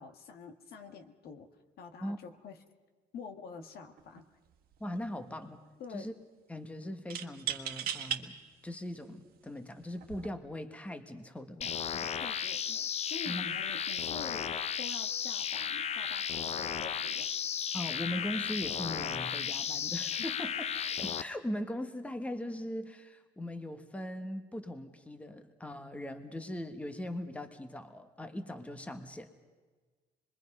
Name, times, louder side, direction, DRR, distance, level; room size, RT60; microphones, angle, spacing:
voice 1, 0.0-1.5 1.8-2.6 3.1-4.3 5.8-6.1 12.2-14.5 14.8-17.3, left 5 dB, 65° left, 6 dB, 1.7 m, -47 dB
sound 1, 4.0-4.2 4.5-5.2 7.1-8.2 8.9-9.0 9.9-10.3, right 10 dB, 60° right, 1.5 m, -37 dB
voice 2, 4.8-5.6 5.9-6.1 6.5-8.4 8.6-12.1 13.3-13.6 17.7-20.5 21.0-29.3, left 1 dB, 10° left, 8 dB, 1.3 m, -40 dB
sound 2, 11.6-21.2, left 8 dB, 40° left, 0.6 m, -34 dB
25.5 x 22.0 x 5.5 m, 1.4 s
cardioid pair, 110°, 17 cm